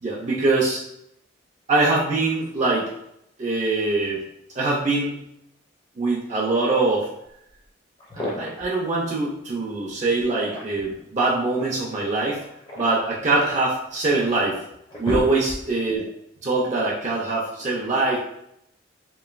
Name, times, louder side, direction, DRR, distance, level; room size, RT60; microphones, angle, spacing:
voice 1, 0.0-0.8 1.7-2.9 3.4-4.2 4.6-5.2 6.0-7.1 8.1-12.4 12.8-14.6 15.0-16.1 16.4-18.2, right 3 dB, 35° right, -4 dB, 0.4 m, -23 dB
sound 1, 7.6-7.7 8.0-8.7 10.2-11.0 12.3-13.7 14.3-14.4 14.7-15.9, equal, 25° left, 0.5 m, -32 dB
3.0 x 2.5 x 2.4 m, 0.78 s
head